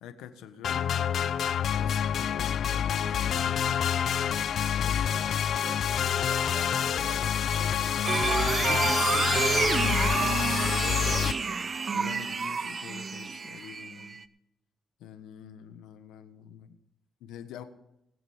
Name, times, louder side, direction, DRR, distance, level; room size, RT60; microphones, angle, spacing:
voice 1, 0.0-0.9 1.8-3.9 4.8-5.3 8.6-8.9 11.9-14.2 15.0-16.8 17.2-17.6, left 9 dB, 90° left, 9 dB, 1.4 m, -45 dB
sound 1, 0.6-11.3, left 9 dB, 60° left, 0.6 m, -27 dB
voice 2, 4.9-8.0 9.8-11.6, right 4 dB, 65° right, 1 dB, 5.1 m, -45 dB
sound 2, 8.0-14.2, right 5 dB, 40° right, 0.7 m, -29 dB
20.0 x 7.5 x 5.1 m, 0.84 s
cardioid pair, 90°, 0 cm